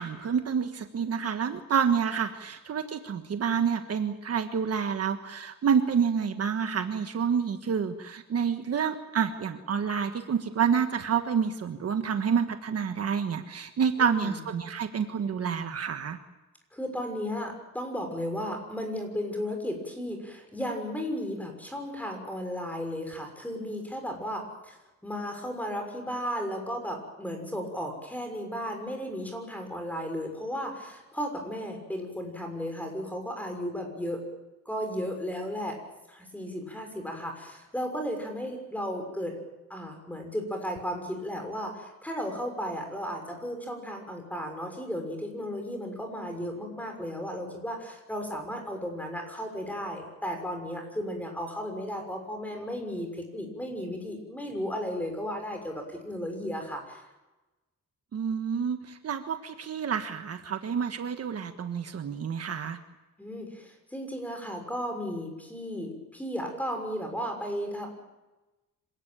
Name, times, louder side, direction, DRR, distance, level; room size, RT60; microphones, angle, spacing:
voice 1, 0.0-16.2 58.1-62.8, right 7 dB, 50° right, 7 dB, 1.5 m, -28 dB
voice 2, 14.0-14.4 16.7-24.8 25.0-34.2 34.6-35.8 36.1-39.4 39.7-57.0 63.2-68.0, equal, 5° left, 4 dB, 6.3 m, -34 dB
26.5 x 17.5 x 9.1 m, 1.1 s
wide cardioid pair, 150°, 31 cm